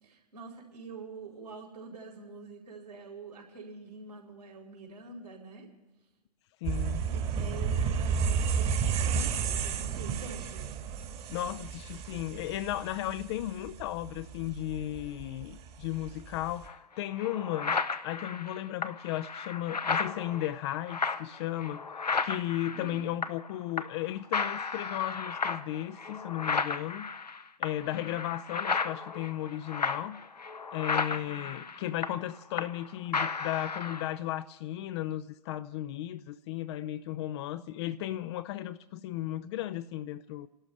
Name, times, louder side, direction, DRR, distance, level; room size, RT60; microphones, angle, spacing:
voice 1, 0.0-5.7 7.1-10.7 22.7-23.0 27.9-28.2 31.0-31.6, right 3 dB, 75° right, 4.5 m, -46 dB
voice 2, 6.6-7.0 11.3-17.8 18.0-21.9 22.2-27.1 27.6-30.5 30.7-40.5, left 13 dB, 40° left, 0.6 m, -35 dB
sound 1, 6.6-16.7, right 6 dB, 30° right, 1.7 m, -32 dB
sound 2, 16.7-16.8 17.2-23.5 23.8-24.1 24.3-32.9 33.1-34.1, left 5 dB, 80° left, 0.9 m, -34 dB
29.5 x 12.0 x 3.3 m
figure-of-eight pair, 100°, 21 cm